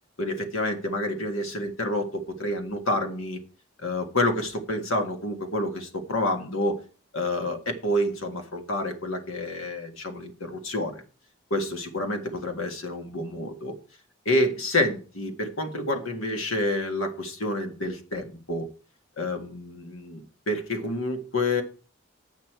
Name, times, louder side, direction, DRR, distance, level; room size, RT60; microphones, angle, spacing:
voice 1, 0.2-3.4 3.8-6.8 7.1-11.0 11.5-13.7 14.3-18.7 19.2-21.6, left 1 dB, 80° left, 1.8 m, -28 dB
9.7 x 8.3 x 4.6 m
head